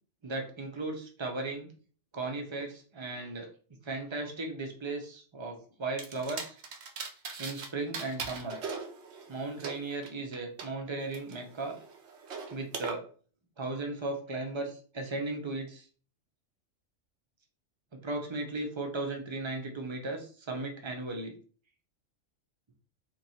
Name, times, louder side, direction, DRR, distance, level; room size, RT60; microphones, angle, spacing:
voice 1, 0.2-1.7 2.1-3.5 3.8-6.6 7.4-8.6 9.3-11.8 12.5-13.0 13.6-15.9 18.0-21.3, right 2 dB, 30° right, 2 dB, 0.6 m, -36 dB
sound 1, 6.0-7.7 7.9-10.7 11.1-12.9, right 5 dB, 65° right, 0.9 m, -40 dB
3.0 x 2.6 x 4.1 m, 0.41 s
omnidirectional pair, 1.3 m